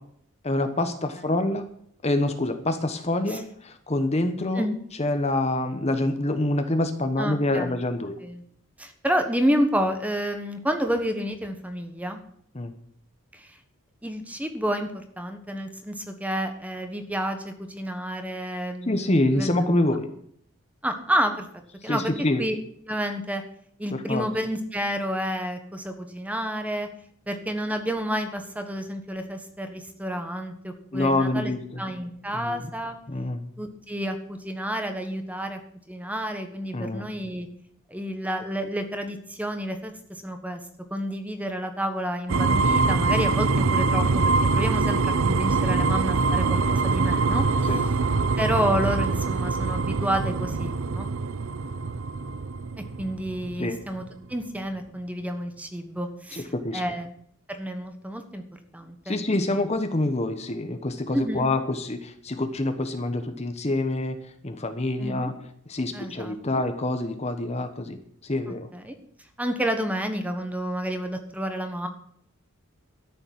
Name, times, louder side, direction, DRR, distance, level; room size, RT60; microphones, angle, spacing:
voice 1, 0.4-1.6 2.0-4.7 5.0-8.2 12.5-12.7 18.9-20.1 21.9-22.4 23.9-24.2 30.9-31.6 32.3-32.6 33.1-33.4 36.7-37.1 47.6-47.9 53.6-53.8 56.3-56.8 59.1-65.3 65.7-68.0 68.2-68.7, left 2 dB, 30° left, 8 dB, 1.0 m, -26 dB
voice 2, 7.2-7.8 8.2-8.4 8.8-12.2 13.3-13.6 14.0-19.5 20.8-21.5 21.8-22.1 22.4-22.5 22.9-23.4 23.8-26.9 27.3-33.0 33.6-35.6 35.9-37.5 37.9-40.6 40.9-47.5 48.4-51.1 53.0-54.0 54.3-57.1 57.5-58.4 58.7-59.2 61.1-61.5 65.0-65.3 65.9-66.6 68.5-68.9 69.4-71.9, equal, 5° right, 6 dB, 1.3 m, -30 dB
sound 1, 42.3-54.1, right 4 dB, 65° right, 0.5 m, -24 dB
13.0 x 7.0 x 8.5 m, 0.66 s
head